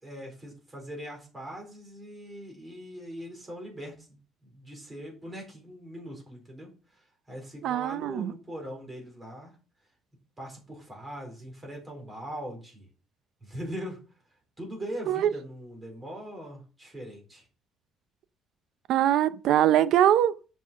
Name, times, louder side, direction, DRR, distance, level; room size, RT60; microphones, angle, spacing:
voice 1, 0.0-6.7 7.3-9.5 10.4-12.9 13.4-14.0 14.6-17.5, equal, 15° right, 4.2 m, -41 dB
voice 2, 7.6-8.3 15.1-15.3 18.9-20.3, right 11 dB, 65° right, 0.6 m, -22 dB
7.4 x 5.7 x 6.1 m
cardioid pair, 140°, 0 cm